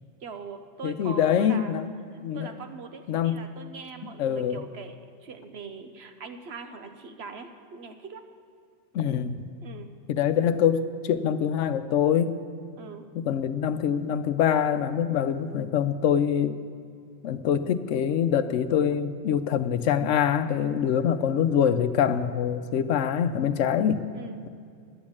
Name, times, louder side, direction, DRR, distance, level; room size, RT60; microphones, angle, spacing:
voice 1, 0.2-1.7 2.3-5.0 5.2-8.2 9.6-9.9 12.8-13.1 24.1-24.5, right 5 dB, 65° right, 6 dB, 1.1 m, -41 dB
voice 2, 0.8-1.9 2.2-2.5 3.1-3.4 4.2-4.6 8.9-9.4 10.1-12.4 13.1-16.6 17.2-24.1, left 8 dB, 90° left, 11 dB, 1.0 m, -24 dB
11.0 x 8.3 x 8.6 m, 2.3 s
omnidirectional pair, 1.2 m